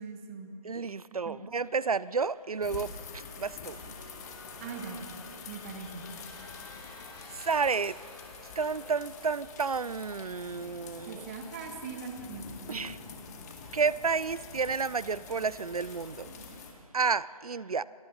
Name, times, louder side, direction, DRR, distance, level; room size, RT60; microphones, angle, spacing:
voice 1, 0.0-0.5 1.3-1.4 4.6-5.1 5.5-6.1 11.1-12.9, right 5 dB, 20° right, 5 dB, 1.7 m, -41 dB
voice 2, 0.6-3.9 7.3-8.0 8.6-11.3 12.7-13.0 13.7-16.3 16.9-17.8, right 5 dB, 75° right, 20 dB, 0.6 m, -31 dB
sound 1, 2.0-16.5, right 2 dB, 55° right, 4.1 m, -57 dB
sound 2, 2.6-16.7, left 5 dB, 30° left, 2.1 m, -47 dB
sound 3, 3.6-9.9, left 2 dB, 45° left, 7.5 m, -51 dB
29.0 x 21.5 x 4.2 m, 2.3 s
figure-of-eight pair, 145°, 19 cm